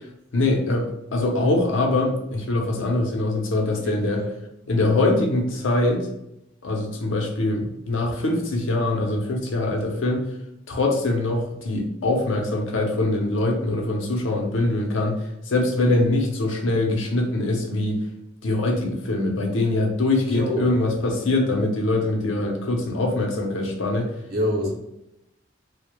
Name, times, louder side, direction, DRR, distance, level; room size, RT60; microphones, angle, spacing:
voice 1, 0.3-4.2 4.7-6.1 6.6-10.3 10.7-15.2 15.5-18.0 18.4-24.1, left 2 dB, 85° left, 1 dB, 0.5 m, -23 dB
voice 2, 3.8-4.3 20.2-20.8 24.3-24.7, left 1 dB, 55° right, -1 dB, 0.8 m, -26 dB
2.1 x 2.0 x 2.9 m, 0.85 s
head